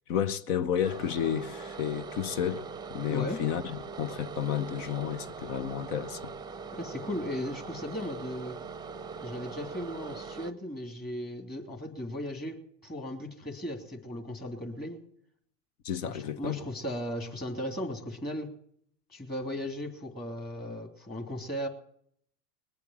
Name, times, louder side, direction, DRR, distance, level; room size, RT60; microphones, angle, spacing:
voice 1, 0.1-6.3 15.8-16.6, left 9 dB, 65° left, 1.0 m, -31 dB
sound 1, 0.8-10.5, right 5 dB, 10° right, 0.6 m, -41 dB
voice 2, 3.1-3.4 6.7-8.6 9.2-15.0 16.0-18.5 19.1-21.7, equal, 20° left, 2.7 m, -36 dB
20.5 x 8.3 x 7.4 m
hypercardioid pair, 95°, 49 cm